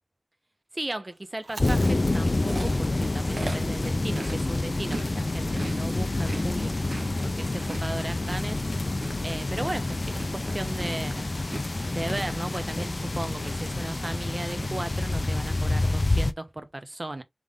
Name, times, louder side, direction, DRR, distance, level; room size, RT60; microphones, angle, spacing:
voice 1, 0.7-6.7 7.2-8.6 9.2-11.3 11.9-17.2, right 1 dB, 40° right, 0.8 m, -36 dB
Chewing mastication, 1.4-5.1 5.4-13.1 13.4-13.7 14.0-14.7, right 2 dB, 75° right, 0.7 m, -40 dB
sound 1, 1.6-16.3, left 2 dB, 60° left, 0.4 m, -28 dB
3.7 x 3.2 x 3.6 m
wide cardioid pair, 55°, 0 cm